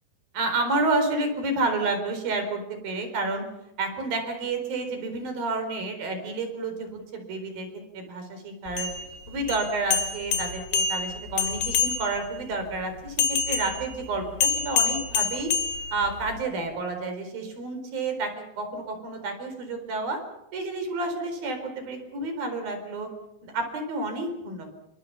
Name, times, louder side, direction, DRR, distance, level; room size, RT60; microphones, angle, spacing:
voice 1, 0.3-3.5 3.8-7.7 7.9-8.9 9.3-15.5 15.9-20.2 20.5-23.1 23.4-24.7, right 3 dB, 70° right, 6 dB, 6.0 m, -30 dB
sound 1, 8.7-12.4 13.2-16.4, left 6 dB, 70° left, 3.6 m, -27 dB
27.5 x 23.5 x 5.8 m, 0.88 s
omnidirectional pair, 4.3 m